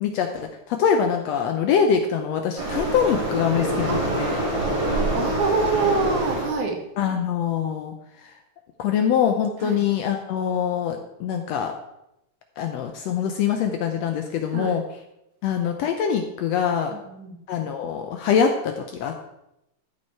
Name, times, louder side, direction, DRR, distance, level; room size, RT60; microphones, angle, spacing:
voice 1, 0.0-4.4 7.0-7.9 8.8-11.7 12.6-14.8 15.4-16.9 17.5-19.2, left 7 dB, 75° left, 5 dB, 1.6 m, -24 dB
Waves surf, 2.6-6.6, right 1 dB, 10° right, 1.9 m, -25 dB
voice 2, 5.1-6.8 9.6-9.8 14.5-14.7 16.9-17.4, right 4 dB, 75° right, 1 dB, 3.0 m, -25 dB
13.5 x 5.5 x 4.6 m, 0.87 s
omnidirectional pair, 3.6 m